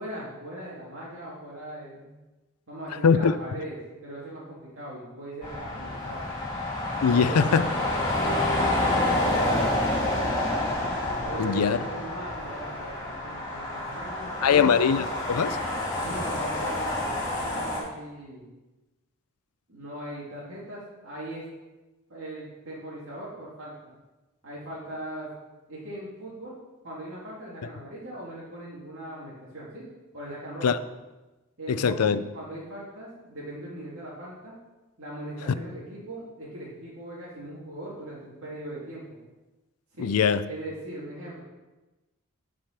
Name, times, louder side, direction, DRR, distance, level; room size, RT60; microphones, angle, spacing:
voice 1, 0.0-2.1 2.7-6.3 7.0-7.6 8.2-9.7 10.2-10.3 11.2-14.8 16.0-18.4 19.7-21.4 22.1-24.0 24.4-25.3 25.7-26.5 26.8-29.9 30.1-30.8 31.6-34.5 35.0-39.2 39.9-40.1 40.4-41.4, right 1 dB, 65° right, -8 dB, 2.3 m, -39 dB
sound 1, 5.4-17.8, left 1 dB, 20° left, 3.0 m, -28 dB
voice 2, 7.0-7.6 11.4-11.8 14.4-15.6 30.6-30.8 31.7-32.2 40.0-40.4, left 6 dB, 90° left, 13 dB, 0.5 m, -21 dB
9.2 x 5.0 x 5.7 m, 1.1 s
head